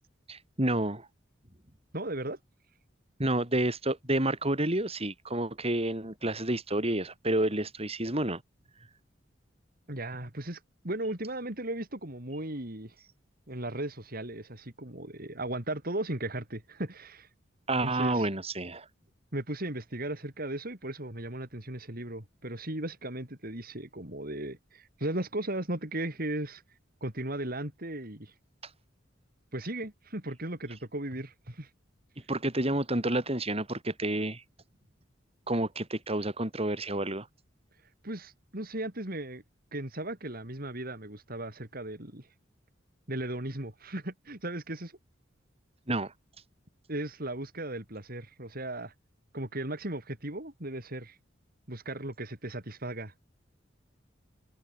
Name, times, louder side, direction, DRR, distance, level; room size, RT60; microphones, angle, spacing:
voice 1, 0.3-1.1 3.2-8.4 17.7-18.8 32.3-34.4 35.5-37.3 45.9-46.1, right 1 dB, 30° right, 6.6 m, -29 dB
voice 2, 1.9-2.4 9.9-10.6 10.8-12.9 13.5-17.3 17.8-18.3 19.3-26.6 27.0-28.3 29.5-31.7 38.0-39.4 39.7-42.3 43.1-44.9 46.9-48.9 49.3-51.2 51.7-53.1, right 1 dB, 50° right, 5.1 m, -36 dB
head